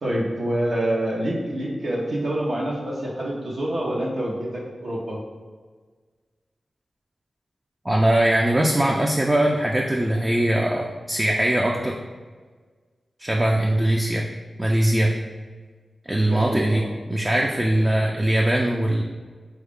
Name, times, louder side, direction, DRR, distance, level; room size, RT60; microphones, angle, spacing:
voice 1, 0.0-5.2 16.2-16.9, right 1 dB, 70° right, -4 dB, 0.8 m, -26 dB
voice 2, 7.8-12.0 13.2-14.3 14.6-15.1 16.1-16.8 17.1-19.0, right 1 dB, 20° right, 0 dB, 0.4 m, -21 dB
3.9 x 2.3 x 3.5 m, 1.5 s
cardioid pair, 50°, 0 cm